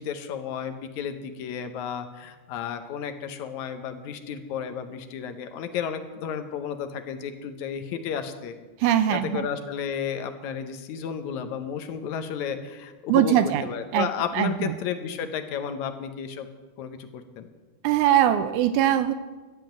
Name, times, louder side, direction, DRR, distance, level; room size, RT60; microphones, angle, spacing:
voice 1, 0.0-8.5 9.1-13.3 13.6-16.5 16.8-17.5, left 7 dB, 70° left, 7 dB, 2.1 m, -32 dB
voice 2, 8.8-9.5 13.1-13.6 13.9-14.1 14.3-14.8 17.8-19.1, right 11 dB, 80° right, 12 dB, 1.9 m, -21 dB
12.5 x 7.6 x 9.1 m, 1.3 s
omnidirectional pair, 3.7 m